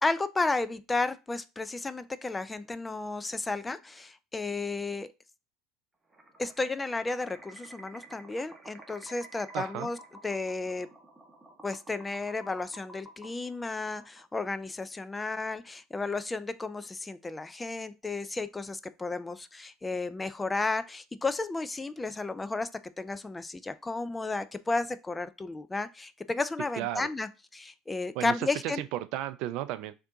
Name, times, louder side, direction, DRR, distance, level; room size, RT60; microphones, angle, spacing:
voice 1, 0.0-5.1 6.4-10.0 10.2-10.9 11.6-22.7 23.0-28.8, left 3 dB, 15° left, 0.3 m, -33 dB
sound 1, 6.1-14.6, right 2 dB, 15° right, 1.0 m, -52 dB
voice 2, 9.5-9.9 26.8-27.1 28.2-28.3 28.6-29.9, right 14 dB, 60° right, 0.3 m, -34 dB
3.3 x 2.7 x 3.7 m
hypercardioid pair, 70°, 0 cm